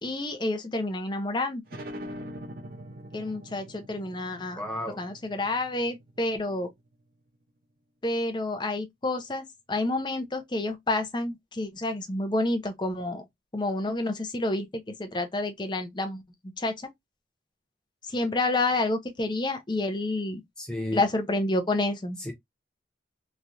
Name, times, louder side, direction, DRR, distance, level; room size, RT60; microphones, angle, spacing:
voice 1, 0.0-1.6 3.1-4.7 5.0-6.7 8.0-13.2 13.5-16.2 16.6-16.7 18.0-20.4 20.9-22.2, left 2 dB, 25° left, 0.6 m, -29 dB
sound 1, 1.7-6.9, equal, 50° right, 0.6 m, -43 dB
voice 2, 4.6-5.0 20.6-21.1 22.2-22.3, left 1 dB, 5° left, 0.9 m, -33 dB
3.1 x 2.4 x 2.5 m
head